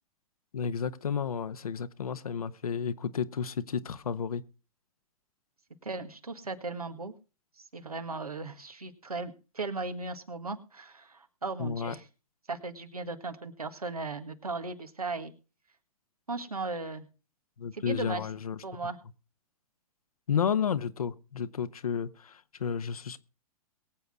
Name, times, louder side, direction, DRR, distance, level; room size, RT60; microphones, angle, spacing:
voice 1, 0.5-4.4 11.6-11.9 17.6-18.6 20.3-23.2, left 7 dB, 75° left, 1.1 m, -32 dB
voice 2, 5.8-7.1 7.6-12.0 12.5-15.3 16.3-17.0 17.7-18.2 18.6-19.0, right 3 dB, 90° right, 1.8 m, -37 dB
22.5 x 8.0 x 3.7 m
figure-of-eight pair, 115°, 19 cm